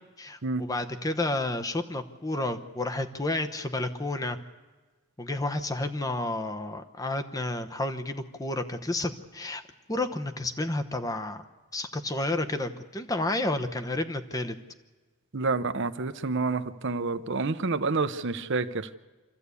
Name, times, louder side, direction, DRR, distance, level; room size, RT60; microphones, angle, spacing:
voice 1, 0.2-4.4 5.2-9.6 9.9-11.4 11.7-14.6, left 2 dB, 15° left, 7 dB, 0.9 m, -31 dB
voice 2, 15.3-18.9, right 3 dB, 55° right, 10 dB, 0.8 m, -28 dB
26.0 x 14.0 x 8.3 m, 1.3 s
head